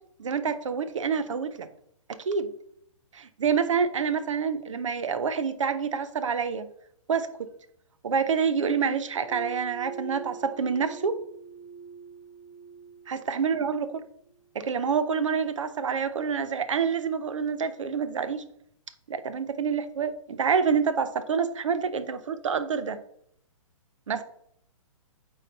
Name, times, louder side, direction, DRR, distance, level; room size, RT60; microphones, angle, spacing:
voice 1, 0.2-1.7 2.2-2.5 3.1-6.7 7.1-7.5 8.0-11.2 13.1-14.1 14.5-18.5 19.1-23.0 24.1-24.2, right 6 dB, 65° right, 12 dB, 0.8 m, -27 dB
sound 1, 9.3-14.0, right 6 dB, 45° right, 1.2 m, -43 dB
9.0 x 3.9 x 4.0 m, 0.71 s
figure-of-eight pair, 125°, 18 cm